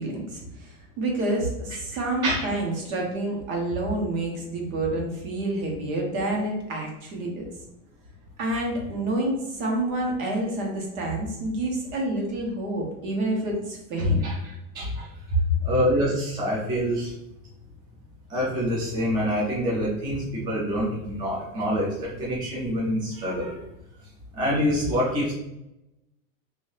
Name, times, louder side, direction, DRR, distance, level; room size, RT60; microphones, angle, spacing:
voice 1, 0.0-7.4 8.4-14.6 15.0-15.5, right 1 dB, 80° right, 0 dB, 1.3 m, -28 dB
voice 2, 14.0-14.4 14.7-14.9 15.6-17.1 18.3-21.9 22.2-23.5 24.4-25.3, equal, 10° right, -6 dB, 0.4 m, -25 dB
2.7 x 2.7 x 3.2 m, 0.89 s
supercardioid pair, 165°, 41 cm